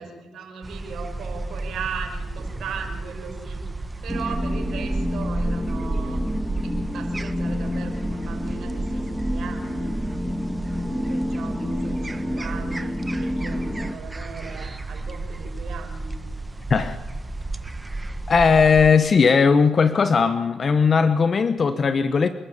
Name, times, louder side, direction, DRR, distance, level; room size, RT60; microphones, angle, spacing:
voice 1, 0.0-3.6 4.0-6.2 6.6-10.0 10.8-16.2, right 5 dB, 70° right, 3 dB, 5.9 m, -37 dB
sound 1, 0.6-18.9, right 2 dB, 20° right, 1.6 m, -32 dB
sound 2, 4.1-14.0, left 1 dB, 5° left, 1.8 m, -29 dB
voice 2, 18.3-22.3, left 5 dB, 45° left, 11 dB, 1.2 m, -18 dB
27.5 x 12.0 x 8.9 m, 1.3 s
supercardioid pair, 60°, 0 cm